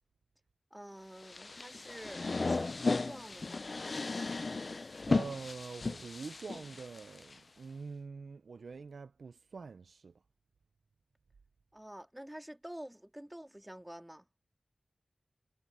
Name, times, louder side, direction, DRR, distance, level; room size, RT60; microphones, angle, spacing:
voice 1, 0.7-3.7 11.7-14.3, right 1 dB, 10° right, 2.2 m, -48 dB
sound 1, 1.2-7.3, left 3 dB, 60° left, 0.5 m, -35 dB
voice 2, 5.1-10.1, right 4 dB, 85° right, 0.5 m, -45 dB
cardioid pair, 40°, 0 cm